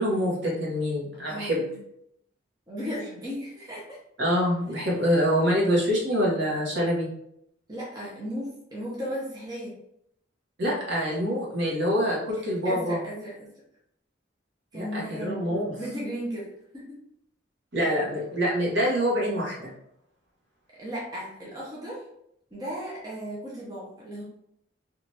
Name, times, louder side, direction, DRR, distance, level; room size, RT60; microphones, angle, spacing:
voice 1, 0.0-1.6 4.2-7.1 10.6-13.0 14.7-15.8 17.7-19.7, equal, 60° right, -4 dB, 0.9 m, -25 dB
voice 2, 1.3-1.8 2.7-4.0 7.7-9.7 12.4-13.3 14.7-15.5 15.8-16.4 16.7-17.0 20.8-22.0 22.5-24.2, equal, 20° right, -6 dB, 0.7 m, -35 dB
3.1 x 2.4 x 2.7 m, 0.75 s
head